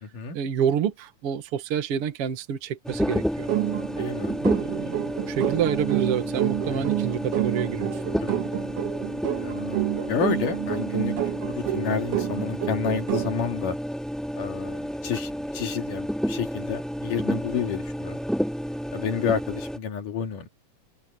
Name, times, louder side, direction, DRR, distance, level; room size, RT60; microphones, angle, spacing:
voice 1, 0.3-3.5 4.4-8.0, right 8 dB, 50° right, 2.4 m, -28 dB
sound 1, 2.8-19.8, equal, ahead, 3.4 m, -31 dB
sound 2, 3.5-13.4, right 14 dB, 80° right, 2.7 m, -29 dB
voice 2, 4.0-4.4 6.7-6.9 8.2-8.4 9.4-11.2 11.5-13.8 14.4-18.2 18.9-20.5, left 7 dB, 85° left, 4.0 m, -30 dB
omnidirectional pair, 3.6 m